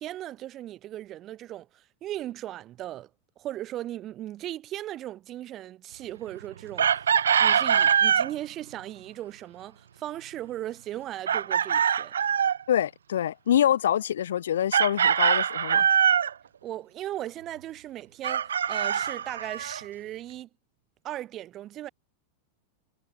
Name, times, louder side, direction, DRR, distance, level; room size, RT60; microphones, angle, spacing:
voice 1, 0.0-3.1 3.4-12.1 16.6-20.5 21.0-21.9, right 13 dB, 30° right, 0.9 m, -37 dB
Chicken rooster, 6.8-8.3 11.3-12.6 14.7-16.3 18.2-19.8, right 8 dB, 65° right, 0.3 m, -23 dB
voice 2, 12.7-15.9, left 10 dB, 60° left, 0.7 m, -25 dB
figure-of-eight pair, 90°, 0 cm